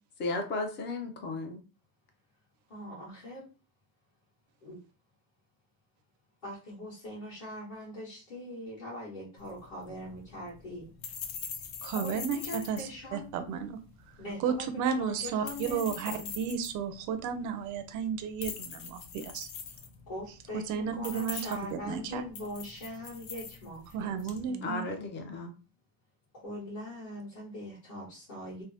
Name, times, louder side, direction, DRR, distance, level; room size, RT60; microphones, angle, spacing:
voice 1, 0.2-1.6 24.6-25.5, left 2 dB, 25° left, 5 dB, 0.4 m, -34 dB
voice 2, 2.7-3.4 4.6-4.8 6.4-10.9 11.9-13.2 14.2-14.7 15.0-16.3 20.1-24.2 24.5-25.1 26.4-28.6, left 1 dB, 40° left, -9 dB, 1.5 m, -42 dB
sound 1, 9.4-24.5, left 6 dB, 80° left, 0.8 m, -44 dB
voice 3, 11.8-13.8 14.4-19.5 20.5-22.2 23.9-24.8, right 7 dB, 40° right, 8 dB, 0.4 m, -33 dB
3.2 x 2.0 x 2.7 m, 0.33 s
cardioid pair, 145°, 50 cm